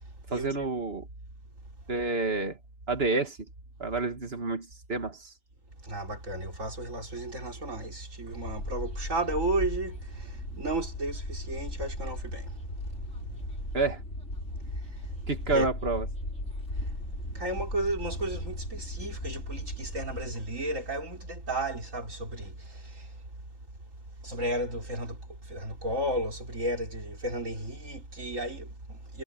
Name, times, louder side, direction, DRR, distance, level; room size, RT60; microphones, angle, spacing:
voice 1, 0.3-1.1 1.9-2.6 2.9-3.4 3.8-5.3 13.7-14.0 15.3-16.1, right 3 dB, 50° right, 2.2 m, -29 dB
voice 2, 5.8-12.5 15.5-15.7 17.3-22.8 24.2-25.2 25.5-29.2, right 1 dB, 85° right, 5.4 m, -33 dB
sound 1, 8.3-20.3, left 1 dB, 65° left, 6.2 m, -37 dB
omnidirectional pair, 1.3 m